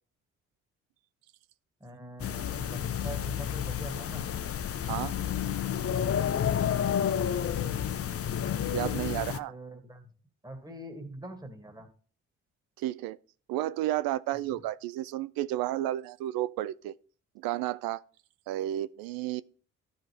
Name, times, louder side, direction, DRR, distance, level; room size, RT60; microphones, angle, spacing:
voice 1, 1.8-4.3 9.3-10.1 10.4-11.9 14.3-14.6, right 1 dB, 10° right, 2.1 m, -44 dB
sound 1, 2.2-9.4, left 9 dB, 40° left, 0.7 m, -30 dB
voice 2, 4.8-5.2 8.7-9.5 12.8-13.2 13.5-16.9 17.4-18.0 18.5-19.4, right 14 dB, 75° right, 0.5 m, -32 dB
13.0 x 5.3 x 3.3 m
hypercardioid pair, 45°, 36 cm